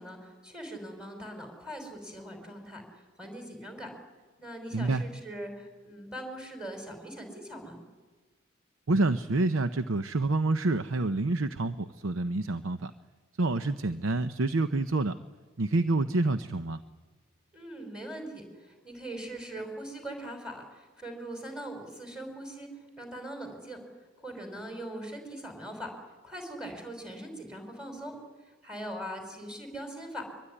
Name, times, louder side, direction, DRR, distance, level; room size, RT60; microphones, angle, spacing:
voice 1, 0.0-3.9 4.4-7.8 17.5-23.8 24.2-25.9 26.2-30.3, right 1 dB, 5° right, 3 dB, 5.3 m, -41 dB
voice 2, 4.7-5.0 8.9-12.9 13.4-15.1 15.6-16.8, right 2 dB, 75° right, 10 dB, 0.8 m, -27 dB
24.0 x 23.0 x 9.9 m, 1.4 s
head